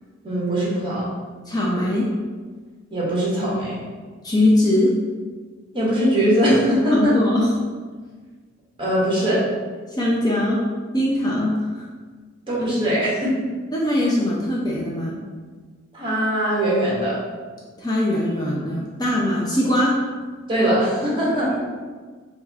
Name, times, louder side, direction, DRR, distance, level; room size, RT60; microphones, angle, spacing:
voice 1, 0.2-1.1 2.9-3.8 5.7-7.2 8.8-9.5 12.5-13.4 15.9-17.2 20.5-21.5, equal, 25° right, -6 dB, 1.4 m, -21 dB
voice 2, 1.5-2.1 4.2-4.9 6.9-7.5 10.0-10.6 10.9-11.8 12.6-12.7 13.7-15.2 17.8-20.0, left 1 dB, 20° left, -4 dB, 0.6 m, -21 dB
4.3 x 3.4 x 3.5 m, 1.5 s
head